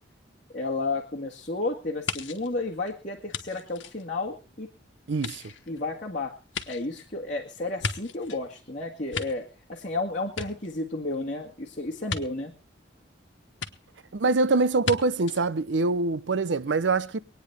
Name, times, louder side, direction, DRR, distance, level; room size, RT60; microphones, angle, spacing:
voice 1, 0.5-4.7 5.4-6.3 6.7-12.5, left 2 dB, 40° left, 2.0 m, -32 dB
sound 1, 2.1-4.7 5.1-8.5 8.9-9.9 10.2-11.2 12.1-12.2 13.6-13.7 14.8-15.0 15.3-15.4, left 5 dB, 85° left, 1.3 m, -36 dB
voice 2, 5.1-5.4 14.1-17.2, right 3 dB, 75° right, 0.6 m, -24 dB
24.5 x 9.5 x 3.4 m
head